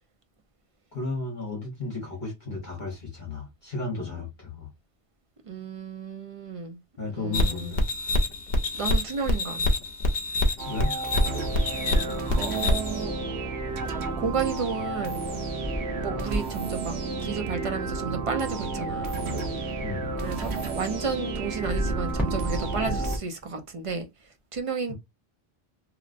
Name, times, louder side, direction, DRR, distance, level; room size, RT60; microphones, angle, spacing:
voice 1, 0.9-4.7 7.0-7.8 10.6-10.9 19.8-20.1 24.9-25.0, left 3 dB, 45° left, 1.3 m, -34 dB
voice 2, 5.5-6.8 7.1-7.8 8.8-9.7 12.4-13.1 14.0-15.2 16.0-16.9 17.2-19.2 20.2-24.1 24.5-24.9, right 5 dB, 40° right, 0.6 m, -32 dB
sound 1, 7.3-13.0, left 2 dB, 65° left, 0.9 m, -25 dB
sound 2, 10.6-23.2, right 4 dB, 85° right, 1.0 m, -32 dB
sound 3, 11.2-23.2, equal, ahead, 1.3 m, -36 dB
3.0 x 2.9 x 2.5 m
omnidirectional pair, 1.1 m